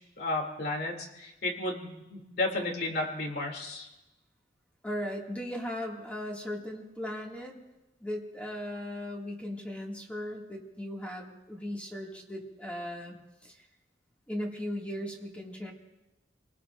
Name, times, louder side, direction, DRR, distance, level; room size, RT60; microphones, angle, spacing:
voice 1, 0.2-3.9, left 2 dB, 60° left, 1 dB, 2.7 m, -33 dB
voice 2, 4.8-7.6 8.0-13.2 13.4-13.6 14.3-15.7, left 1 dB, 10° left, -1 dB, 2.2 m, -37 dB
29.0 x 19.5 x 2.6 m, 0.97 s
head